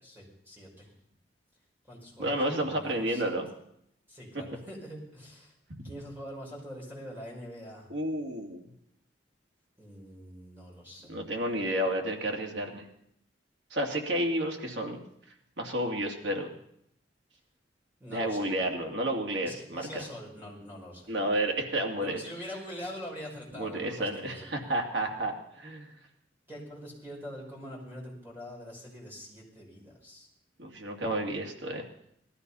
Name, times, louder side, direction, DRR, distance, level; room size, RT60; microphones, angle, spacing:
voice 1, 0.0-0.9 1.9-3.4 4.1-5.5 5.8-7.9 9.8-11.2 18.0-18.5 19.4-21.2 22.0-24.5 26.5-30.3, equal, 10° right, -3 dB, 5.2 m, -44 dB
voice 2, 2.2-3.5 7.9-8.6 11.1-12.9 13.7-15.0 15.6-16.5 18.1-20.0 21.1-22.2 23.5-25.9 30.6-31.8, right 1 dB, 70° right, 1 dB, 2.6 m, -31 dB
18.5 x 13.0 x 5.6 m, 0.74 s
head